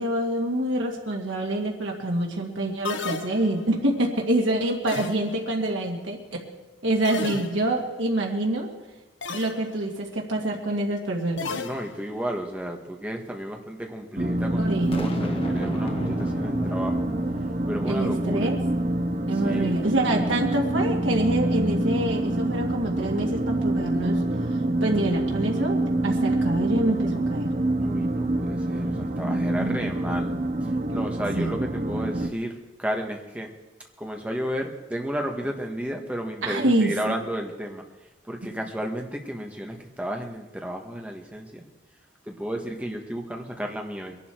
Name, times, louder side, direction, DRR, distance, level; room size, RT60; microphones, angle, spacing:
voice 1, 0.0-6.2 6.8-8.7 9.3-11.6 14.6-15.1 17.8-18.6 19.3-24.2 24.8-27.5 29.6-29.8 31.4-31.6 36.4-37.1, right 1 dB, 85° right, 0 dB, 2.1 m, -26 dB
sound 1, 2.9-3.8 4.9-5.6 7.0-7.9 9.2-9.7 11.4-12.3, left 4 dB, 70° left, 1.0 m, -34 dB
voice 2, 11.6-14.7 15.0-17.0 17.7-18.6 19.4-19.8 27.8-30.3 30.6-33.5 34.0-37.8 38.2-41.6 42.2-44.2, equal, 5° right, 2 dB, 1.6 m, -33 dB
sound 2, 14.2-32.3, right 1 dB, 40° right, 0.8 m, -26 dB
Boom, 14.9-18.2, left 1 dB, 30° left, 1.2 m, -35 dB
22.5 x 11.5 x 4.6 m, 1.1 s
head